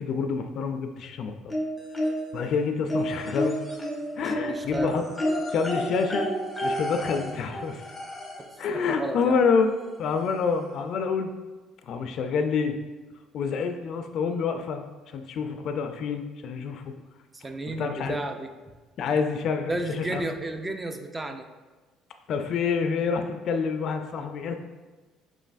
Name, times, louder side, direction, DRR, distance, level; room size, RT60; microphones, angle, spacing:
voice 1, 0.0-1.5 2.3-3.6 4.2-5.0 5.5-6.3 6.6-7.8 8.6-9.7 10.0-11.3 11.8-12.8 13.3-14.8 15.1-16.9 17.7-18.1 19.0-20.2 22.3-24.5, left 5 dB, 60° left, 6 dB, 0.3 m, -27 dB
sound 1, 1.5-2.5 2.9-8.6 9.8-9.9 10.3-10.4, equal, 10° left, 0.8 m, -30 dB
voice 2, 4.2-5.0 8.4-9.4 17.3-18.5 19.7-21.5, right 2 dB, 20° right, 6 dB, 0.4 m, -33 dB
4.9 x 3.1 x 2.5 m, 1.3 s
cardioid pair, 95°, 0 cm